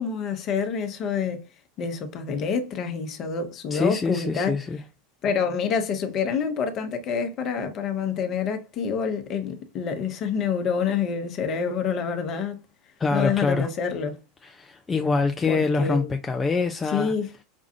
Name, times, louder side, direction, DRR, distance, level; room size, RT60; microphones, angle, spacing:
voice 1, 0.0-1.4 1.8-4.6 5.2-12.6 13.1-14.2 15.5-16.1 16.9-17.3, left 6 dB, 40° left, 0.9 m, -27 dB
voice 2, 3.7-4.8 13.0-13.7 14.4-17.1, left 4 dB, 20° left, 0.4 m, -25 dB
5.3 x 2.4 x 2.6 m
figure-of-eight pair, 85°, 0 cm